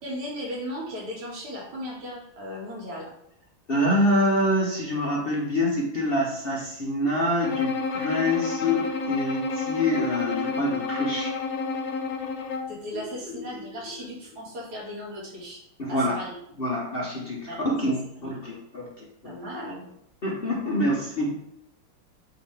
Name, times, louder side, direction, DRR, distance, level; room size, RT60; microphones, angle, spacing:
voice 1, 0.0-3.1 12.7-15.6 15.9-16.3 17.5-17.6 19.2-19.9, equal, 80° right, -4 dB, 2.9 m, -36 dB
voice 2, 3.7-11.3 12.9-13.0 13.3-13.7 15.8-16.2 16.6-19.3 19.7-19.8 20.2-21.3, left 1 dB, 45° left, -4 dB, 0.8 m, -26 dB
Bowed string instrument, 7.4-12.8, left 4 dB, 70° left, 0.8 m, -30 dB
8.3 x 3.5 x 3.4 m, 0.74 s
omnidirectional pair, 2.4 m